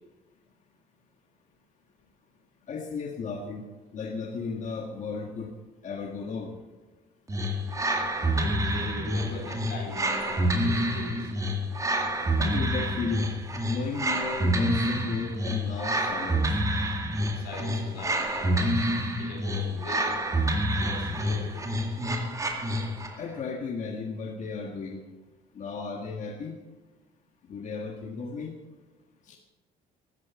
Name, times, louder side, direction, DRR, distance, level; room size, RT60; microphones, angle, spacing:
voice 1, 2.7-5.5 5.8-6.5 12.4-13.3 13.7-16.4 23.2-25.0 25.5-26.6 27.4-28.5 29.2-29.4, left 4 dB, 45° left, 2 dB, 1.7 m, -34 dB
sound 1, 7.3-23.2, right 1 dB, 20° right, 2.1 m, -28 dB
voice 2, 8.3-11.3 17.3-18.9 19.2-20.1 20.7-21.6, left 2 dB, 85° left, 1 dB, 4.9 m, -40 dB
13.5 x 9.7 x 7.1 m, 1.2 s
cardioid pair, 110°, 17 cm